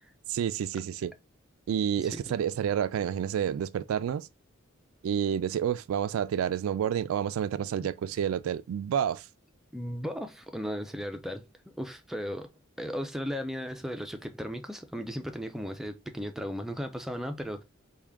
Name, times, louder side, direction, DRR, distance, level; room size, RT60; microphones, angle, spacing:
voice 1, 0.3-1.1 1.7-4.3 5.0-9.2, right 8 dB, 90° right, 0.3 m, -29 dB
voice 2, 2.0-2.4 9.7-11.5 11.8-12.5 12.8-17.6, equal, ahead, 0.4 m, -36 dB
3.6 x 2.2 x 3.4 m
head